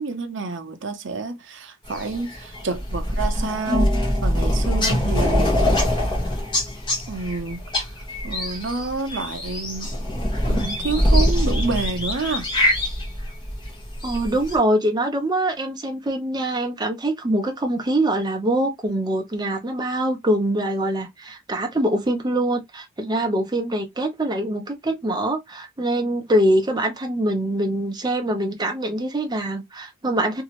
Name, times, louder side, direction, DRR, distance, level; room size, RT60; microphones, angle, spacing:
voice 1, 0.0-5.6 7.1-7.9 8.2-9.9 10.5-12.5, right 4 dB, 60° right, 0.7 m, -29 dB
sound 1, 1.9-14.6, left 1 dB, 25° left, 1.1 m, -23 dB
voice 2, 14.0-30.4, right 1 dB, 20° right, 0.7 m, -24 dB
3.0 x 2.7 x 2.9 m
head